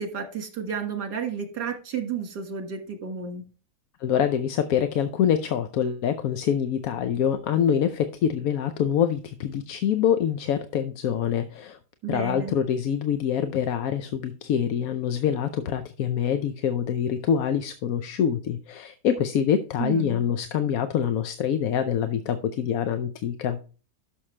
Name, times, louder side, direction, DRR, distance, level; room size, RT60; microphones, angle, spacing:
voice 1, 0.0-3.4 12.0-12.5 19.8-20.3, right 6 dB, 75° right, 6 dB, 2.3 m, -32 dB
voice 2, 4.0-11.8 12.1-23.6, left 8 dB, 65° left, 10 dB, 1.0 m, -25 dB
11.5 x 6.4 x 3.2 m, 0.37 s
omnidirectional pair, 1.8 m